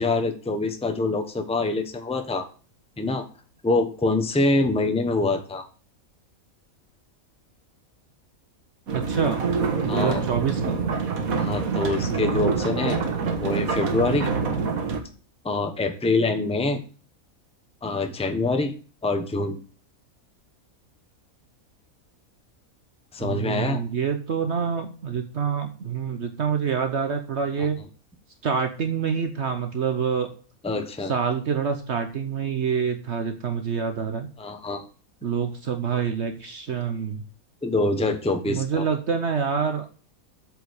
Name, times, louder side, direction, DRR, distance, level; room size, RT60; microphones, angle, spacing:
voice 1, 0.0-2.5 3.0-3.3 3.6-5.7 9.9-10.2 11.4-13.0 13.4-14.3 15.4-16.8 17.8-18.7 19.0-19.6 23.1-23.8 27.6-27.7 30.6-31.1 34.4-34.8 37.6-38.9, left 2 dB, 5° left, 6 dB, 0.9 m, -25 dB
voice 2, 8.9-9.5 9.8-10.8 12.0-12.5 23.2-27.8 28.4-30.3 31.0-34.3 35.2-37.2 38.5-39.9, right 6 dB, 55° right, 6 dB, 1.1 m, -26 dB
sound 1, 8.9-15.0, right 5 dB, 80° right, 1.8 m, -26 dB
8.2 x 5.1 x 6.5 m, 0.39 s
omnidirectional pair, 1.5 m